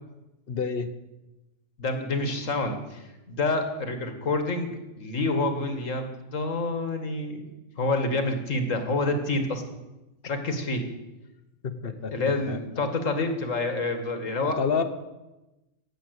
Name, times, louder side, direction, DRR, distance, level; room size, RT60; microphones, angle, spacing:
voice 1, 0.5-0.9 11.8-12.9 14.6-14.8, left 6 dB, 45° left, 10 dB, 1.2 m, -29 dB
voice 2, 1.8-7.5 7.8-9.6 10.3-10.9 11.8-14.6, left 2 dB, 70° left, 7 dB, 2.1 m, -28 dB
17.0 x 8.0 x 8.1 m, 1.0 s
omnidirectional pair, 1.4 m